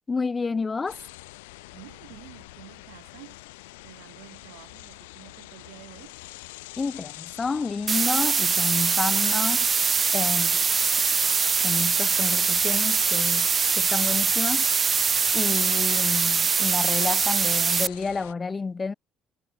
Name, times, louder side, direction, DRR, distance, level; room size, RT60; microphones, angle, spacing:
voice 1, 0.1-1.0 6.8-9.7 10.1-10.6 11.6-13.5 13.8-14.7 15.3-18.9, left 4 dB, 30° left, 1.3 m, -30 dB
sound 1, 0.9-18.3, left 23 dB, 75° left, 1.8 m, -45 dB
voice 2, 1.7-3.4 3.8-6.2 15.5-15.9, right 33 dB, 70° right, 4.2 m, -49 dB
sound 2, 7.9-17.9, right 5 dB, 35° right, 0.8 m, -23 dB
figure-of-eight pair, 50°, 0 cm